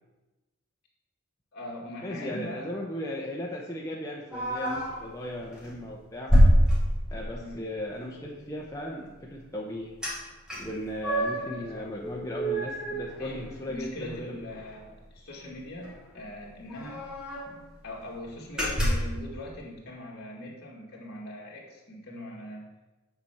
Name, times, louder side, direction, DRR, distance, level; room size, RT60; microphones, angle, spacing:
voice 1, 1.5-2.7 7.4-7.6 11.2-11.9 13.2-17.0 17.8-22.7, left 1 dB, 45° left, -4 dB, 2.2 m, -41 dB
voice 2, 2.0-6.3 7.1-9.9 10.6-14.4, left 1 dB, 15° left, -3 dB, 0.7 m, -37 dB
sound 1, 4.3-5.0 5.5-5.7 6.3-7.4 10.0-10.2 10.5-11.5 12.0-13.8 14.1-14.2 14.5-14.7 15.8-15.9 16.2-16.3 16.7-17.6 18.0-18.2 18.6-19.2, equal, 5° right, 1.8 m, -25 dB
8.0 x 4.5 x 7.0 m, 1.1 s
head